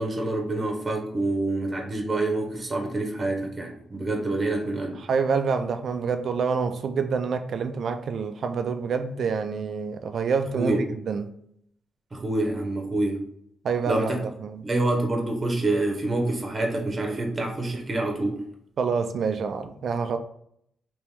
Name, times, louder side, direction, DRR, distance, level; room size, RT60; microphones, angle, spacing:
voice 1, 0.0-5.0 10.5-10.8 12.1-13.2 13.9-14.2 14.6-18.4, right 2 dB, 30° right, 0.9 m, -27 dB
voice 2, 5.0-11.3 13.6-14.6 18.8-20.2, right 5 dB, 65° right, 0.3 m, -27 dB
3.0 x 3.0 x 3.4 m
cardioid pair, 100°, 0 cm